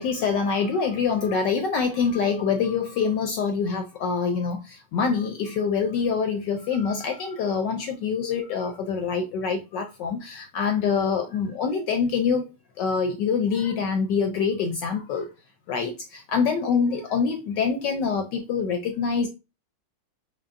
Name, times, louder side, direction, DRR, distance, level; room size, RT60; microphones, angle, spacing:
voice 1, 0.0-12.5 12.8-15.3 15.7-19.3, left 5 dB, 75° left, 1.0 m, -25 dB
4.2 x 3.3 x 2.5 m
omnidirectional pair, 2.4 m